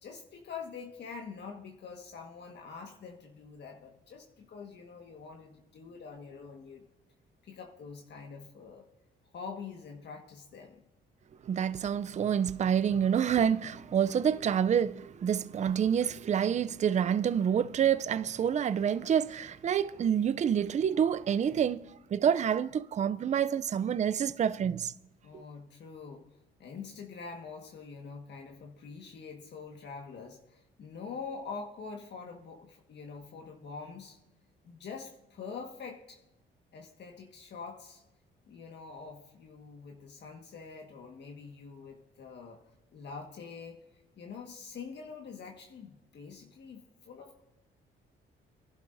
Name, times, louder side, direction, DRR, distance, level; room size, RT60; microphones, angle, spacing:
voice 1, 0.0-6.8 7.4-8.9 9.3-10.8 25.2-26.3 26.6-34.2 34.6-36.2 36.7-38.0 38.5-42.6 42.9-43.8 44.2-47.4, left 5 dB, 60° left, 1.6 m, -45 dB
voice 2, 11.4-24.9 25.3-25.4, right 8 dB, 35° right, 0.4 m, -28 dB
22.5 x 11.5 x 2.6 m
cardioid pair, 90°, 20 cm